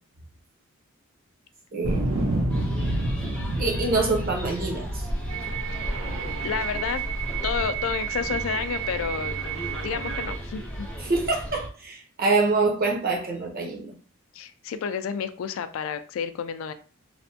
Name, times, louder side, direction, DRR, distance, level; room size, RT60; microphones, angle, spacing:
voice 1, 1.7-2.1 3.6-4.9 11.0-13.9, right 3 dB, 45° right, 1 dB, 0.7 m, -25 dB
sound 1, 1.8-7.1 7.6-8.4, right 1 dB, 85° right, 0.8 m, -29 dB
sound 2, 2.5-11.7, equal, 5° left, 0.5 m, -35 dB
sound 3, 5.3-10.4, right 11 dB, 65° right, 0.4 m, -33 dB
voice 2, 5.7-6.1 6.4-7.0 7.4-9.5 9.8-10.9 14.3-16.7, left 7 dB, 70° left, 11 dB, 0.3 m, -30 dB
3.2 x 2.1 x 2.7 m, 0.41 s
head